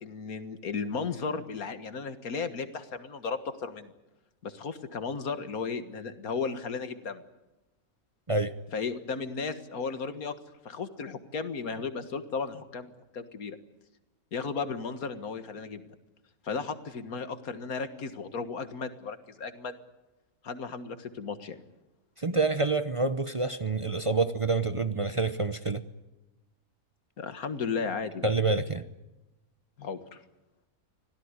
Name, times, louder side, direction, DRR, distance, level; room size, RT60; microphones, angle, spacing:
voice 1, 0.0-3.9 4.4-7.2 8.7-10.3 10.7-13.6 14.3-15.8 16.4-19.7 20.4-21.6 27.2-28.3 29.8-30.2, left 5 dB, 85° left, 2.0 m, -35 dB
voice 2, 22.2-25.8 28.2-28.8, right 3 dB, 25° right, 0.8 m, -27 dB
25.5 x 17.0 x 9.7 m
omnidirectional pair, 1.5 m